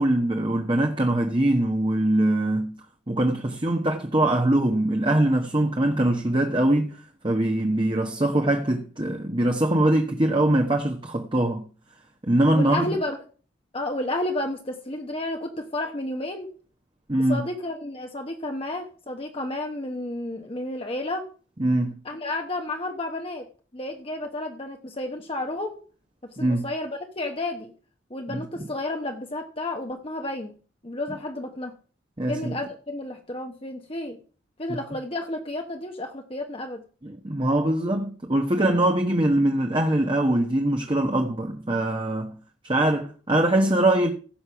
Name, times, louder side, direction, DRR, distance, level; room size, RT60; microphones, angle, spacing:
voice 1, 0.0-2.7 3.1-11.6 12.3-12.9 17.1-17.4 21.6-21.9 26.4-26.6 28.3-28.4 32.2-32.5 37.0-42.3 42.6-44.1, right 1 dB, 25° right, 1.1 m, -22 dB
voice 2, 12.5-13.2 13.7-16.5 17.3-21.3 22.0-23.4 23.7-25.8 26.4-27.7 28.1-30.5 30.8-31.7 32.3-34.2 34.6-36.8, left 1 dB, 30° left, 1.1 m, -31 dB
16.0 x 6.7 x 5.8 m
head